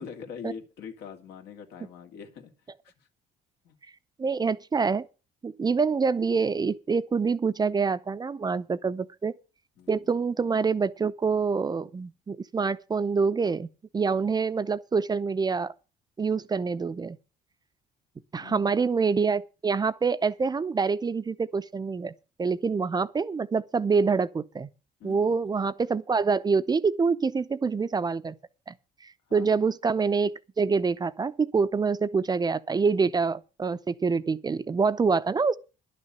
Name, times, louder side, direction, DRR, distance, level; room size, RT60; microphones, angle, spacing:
voice 1, 0.0-2.5 2.8-3.1 3.6-3.8 9.8-10.1 18.4-18.7 25.0-25.5 29.3-29.6, left 7 dB, 80° left, 2.5 m, -43 dB
voice 2, 4.2-5.1 5.4-9.3 9.9-13.7 13.9-15.7 16.2-17.2 18.3-22.1 22.4-24.7 25.0-28.3 28.7-28.8 29.0-35.6, right 5 dB, 25° right, 0.6 m, -26 dB
11.0 x 6.6 x 8.6 m
cardioid pair, 110°, 17 cm